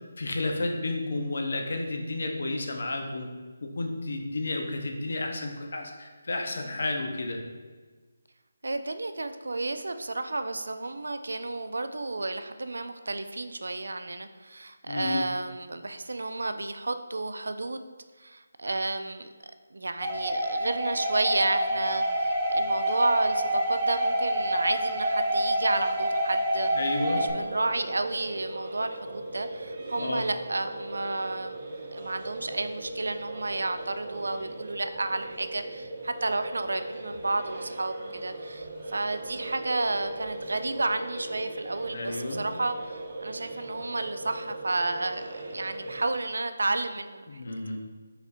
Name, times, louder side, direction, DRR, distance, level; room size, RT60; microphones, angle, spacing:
voice 1, 0.2-3.3 3.6-7.4 14.9-15.3 26.7-27.2 30.0-30.3 41.9-42.4 47.3-47.8, left 2 dB, 65° left, 3 dB, 0.7 m, -31 dB
voice 2, 8.6-17.8 18.2-19.3 19.7-26.7 27.1-31.6 31.9-47.4, right 2 dB, 75° right, 9 dB, 0.3 m, -31 dB
sound 1, 20.0-27.3, right 1 dB, 20° right, 0.6 m, -27 dB
sound 2, 27.2-46.1, right 2 dB, 45° right, 0.9 m, -39 dB
5.0 x 4.2 x 2.6 m, 1.4 s
figure-of-eight pair, 155°, 0 cm